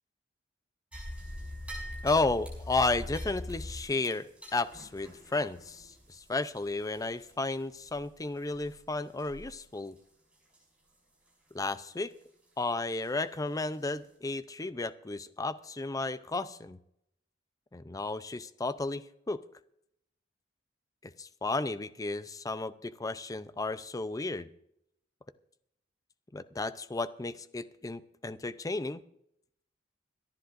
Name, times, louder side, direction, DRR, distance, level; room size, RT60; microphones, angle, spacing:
sound 1, 0.9-7.5 7.8-8.0 8.5-8.7 9.2-9.5 9.8-10.0 10.5-10.6 13.0-13.1 13.7-13.8, left 1 dB, 5° right, 6.0 m, -43 dB
voice 1, 2.0-10.0 11.5-12.1 12.6-16.8 17.7-19.4 21.0-24.5 26.3-29.0, left 3 dB, 20° left, 13 dB, 0.5 m, -33 dB
26.0 x 10.5 x 2.6 m, 0.77 s
head